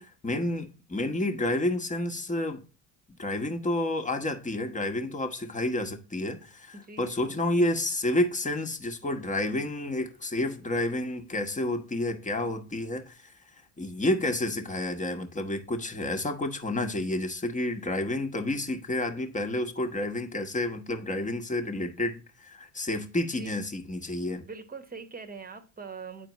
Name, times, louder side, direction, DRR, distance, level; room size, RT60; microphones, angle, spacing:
voice 1, 0.2-2.6 3.2-13.3 13.8-24.4, left 1 dB, 15° left, 1.2 m, -30 dB
voice 2, 6.7-7.4 23.3-23.6 24.4-26.3, right 4 dB, 20° right, 1.1 m, -43 dB
9.1 x 4.4 x 3.0 m
hypercardioid pair, 65°, 44 cm